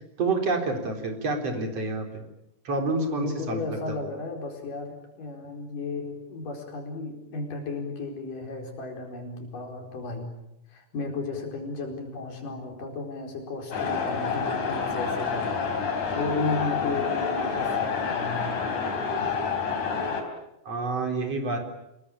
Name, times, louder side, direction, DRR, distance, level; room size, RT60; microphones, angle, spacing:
voice 1, 0.2-2.2 2.6-4.0 20.7-21.6, right 3 dB, 50° right, 3 dB, 5.0 m, -28 dB
voice 2, 3.2-10.3 10.7-15.7 16.2-18.4 19.2-19.3, left 3 dB, 80° left, 2 dB, 6.2 m, -34 dB
sound 1, 13.7-20.2, left 5 dB, 65° left, 5.3 m, -28 dB
28.5 x 21.5 x 8.8 m, 0.86 s
omnidirectional pair, 3.7 m